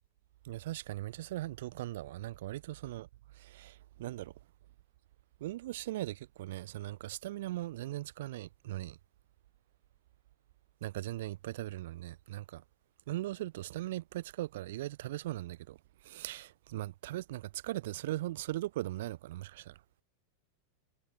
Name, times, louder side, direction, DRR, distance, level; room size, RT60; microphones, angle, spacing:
voice 1, 0.4-3.1 3.4-4.3 5.4-9.0 10.8-12.6 13.1-15.8 16.0-19.8, right 15 dB, 55° right, 0.4 m, -39 dB
figure-of-eight pair, 90°, 0 cm